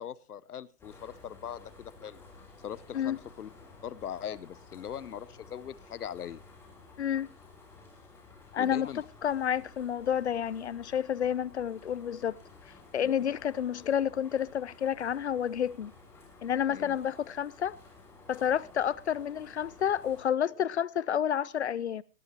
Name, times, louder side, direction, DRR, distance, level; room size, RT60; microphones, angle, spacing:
voice 1, 0.0-2.2 2.6-3.5 3.8-6.4 8.6-9.0 16.7-17.0, left 9 dB, 75° left, 0.9 m, -40 dB
sound 1, 0.8-20.2, left 3 dB, 5° left, 3.0 m, -54 dB
voice 2, 7.0-7.3 8.5-8.9 9.2-12.4 12.7-15.9 16.4-17.8 18.3-22.0, left 9 dB, 45° left, 0.6 m, -30 dB
17.5 x 15.5 x 2.8 m
hypercardioid pair, 165°, 46 cm